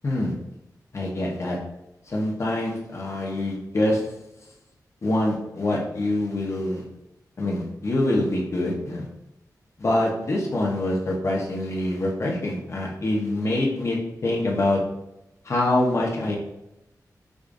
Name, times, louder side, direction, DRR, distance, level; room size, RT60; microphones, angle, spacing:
voice 1, 0.9-1.6 2.1-4.0 5.0-6.8 7.4-9.1 9.8-14.8 15.4-16.4, left 1 dB, 45° left, -2 dB, 0.8 m, -25 dB
4.9 x 2.4 x 2.5 m, 0.90 s
wide cardioid pair, 120°, 7 cm